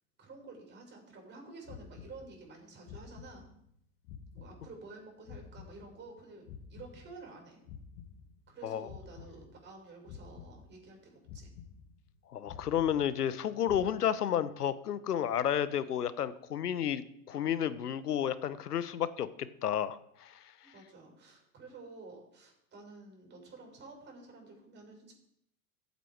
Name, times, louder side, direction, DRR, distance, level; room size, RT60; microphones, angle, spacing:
voice 1, 0.2-3.5 4.3-7.6 8.5-11.5 20.6-25.1, right 3 dB, 25° right, 1 dB, 6.3 m, -51 dB
sound 1, 1.6-2.6 2.8-3.8 4.0-6.2 6.4-8.6 8.8-9.8 10.0-11.0 11.2-12.2 12.4-13.4 13.6-13.9, left 7 dB, 45° left, 1.6 m, -50 dB
voice 2, 12.3-17.0 17.3-20.4, left 9 dB, 85° left, 15 dB, 1.0 m, -31 dB
15.0 x 8.5 x 4.7 m, 0.75 s
hypercardioid pair, 100°, 46 cm